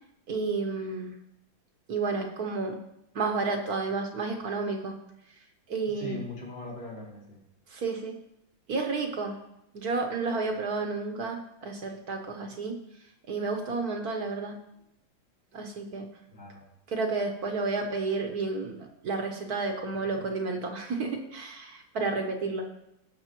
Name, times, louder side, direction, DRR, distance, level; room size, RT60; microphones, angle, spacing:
voice 1, 0.3-1.1 1.9-2.8 3.1-4.9 5.7-6.2 7.7-8.2 8.7-9.4 9.7-12.8 13.3-14.6 15.5-16.1 16.9-22.7, right 3 dB, 55° right, 4 dB, 1.3 m, -31 dB
voice 2, 5.9-7.4 16.3-16.6 20.2-20.3, left 2 dB, 85° left, -6 dB, 4.3 m, -40 dB
17.0 x 6.6 x 3.0 m, 0.83 s
omnidirectional pair, 2.1 m